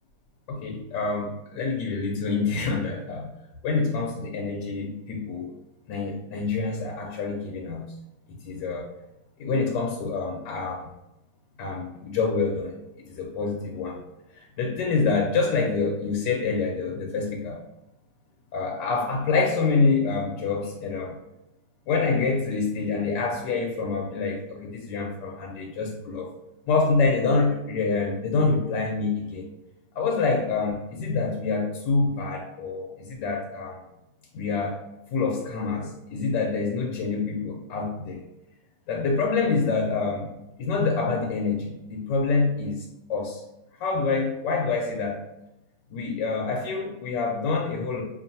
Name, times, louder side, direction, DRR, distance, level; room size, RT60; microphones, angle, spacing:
voice 1, 0.5-3.3 3.6-5.5 5.9-7.9 8.4-8.9 9.4-10.9 11.6-14.0 14.3-17.6 18.5-21.2 21.9-26.3 26.7-29.4 29.9-33.8 34.3-34.8 35.1-38.2 38.9-40.3 40.6-43.4 43.8-45.2 45.9-48.0, left 4 dB, 85° left, 0 dB, 1.3 m, -26 dB
5.2 x 2.5 x 2.7 m, 0.91 s
omnidirectional pair, 1.9 m